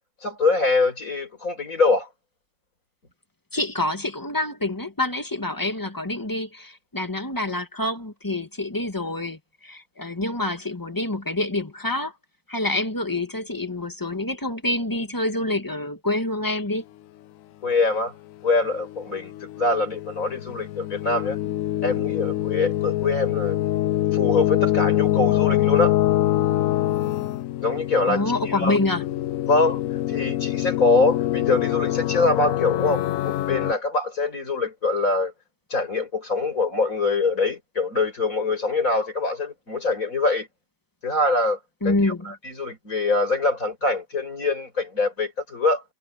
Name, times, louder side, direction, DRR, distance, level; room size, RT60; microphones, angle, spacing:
voice 1, 0.2-2.1 17.6-18.1 18.4-21.4 21.8-23.6 24.1-26.0 27.6-28.2 28.5-28.8 29.5-29.8 30.1-35.3 35.7-40.5 41.0-41.6 41.8-45.8, left 3 dB, 45° left, 6.0 m, -24 dB
voice 2, 3.5-12.1 12.5-16.8 28.1-29.1 41.8-42.3, left 2 dB, 10° left, 1.7 m, -27 dB
sound 1, 18.9-33.7, left 14 dB, 90° left, 0.7 m, -24 dB
omnidirectional pair, 2.0 m